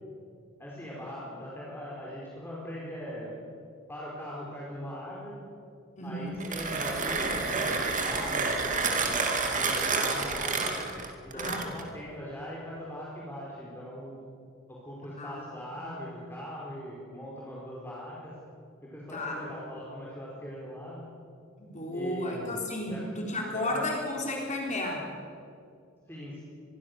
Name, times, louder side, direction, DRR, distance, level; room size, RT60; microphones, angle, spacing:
voice 1, 0.6-3.3 3.9-5.4 6.0-9.0 9.4-10.8 11.2-14.2 14.7-18.3 18.8-21.0 21.9-23.0 23.5-23.8 26.1-26.4, equal, 10° left, -5 dB, 4.7 m, -40 dB
voice 2, 6.0-6.4 11.3-11.7 15.2-15.5 15.7-16.1 19.1-19.4 21.6-25.1, left 1 dB, 35° left, -1 dB, 4.0 m, -33 dB
Mechanisms, 6.3-11.9, right 4 dB, 40° right, 2.5 m, -29 dB
25.0 x 22.0 x 6.9 m, 2.4 s
head